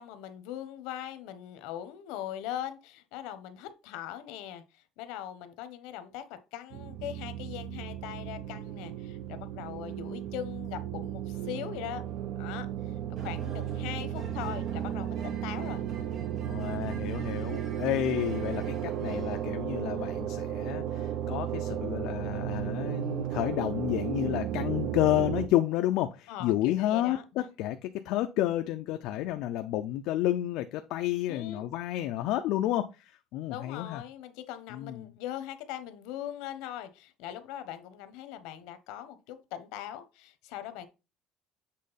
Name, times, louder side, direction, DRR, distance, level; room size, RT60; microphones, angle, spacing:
voice 1, 0.0-12.0 12.4-12.7 13.2-15.8 25.1-25.2 26.3-27.5 31.3-31.7 33.5-40.9, left 11 dB, 90° left, 0.9 m, -41 dB
sound 1, 6.7-25.5, right 10 dB, 60° right, 0.6 m, -34 dB
sound 2, 13.2-19.4, right 4 dB, 40° right, 1.3 m, -46 dB
voice 2, 16.4-27.2 27.6-34.0 34.7-35.1, left 14 dB, 65° left, 0.5 m, -30 dB
7.5 x 3.7 x 4.1 m
cardioid pair, 175°, 0 cm